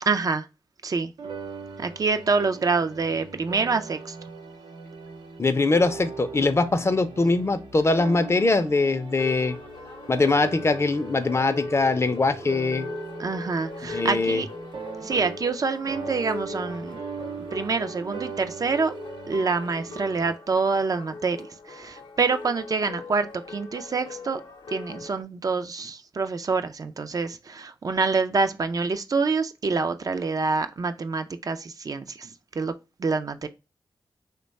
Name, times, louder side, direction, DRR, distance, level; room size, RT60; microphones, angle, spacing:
voice 1, 0.1-0.5 0.8-1.1 1.8-4.2 13.2-14.5 15.0-17.0 17.5-19.0 19.3-24.4 24.7-32.3 32.5-32.7 33.0-33.5, right 4 dB, 45° right, 0.3 m, -26 dB
sound 1, 1.2-15.6 15.9-20.3, right 5 dB, 90° right, 0.6 m, -40 dB
voice 2, 5.4-9.6 10.1-12.9 13.9-14.4, left 3 dB, 35° left, 0.4 m, -22 dB
sound 2, 9.1-25.2, left 3 dB, 80° left, 0.7 m, -40 dB
3.0 x 2.2 x 4.0 m
cardioid pair, 65°, 8 cm